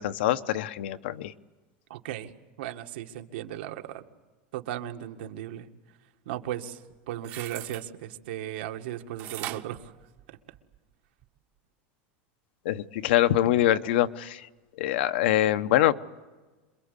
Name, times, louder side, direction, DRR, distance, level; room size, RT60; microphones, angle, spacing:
voice 1, 0.0-1.3 12.6-14.5 14.8-15.9, left 13 dB, 75° left, 11 dB, 1.0 m, -24 dB
voice 2, 1.9-2.3 2.6-4.0 4.5-5.7 6.3-6.8 7.1-9.8, right 12 dB, 80° right, 5 dB, 1.8 m, -36 dB
sound 1, 6.9-7.8 9.2-10.7 11.2-11.3, right 14 dB, 40° right, 0.8 m, -39 dB
27.0 x 22.5 x 8.3 m, 1.2 s
supercardioid pair, 175°, 6 cm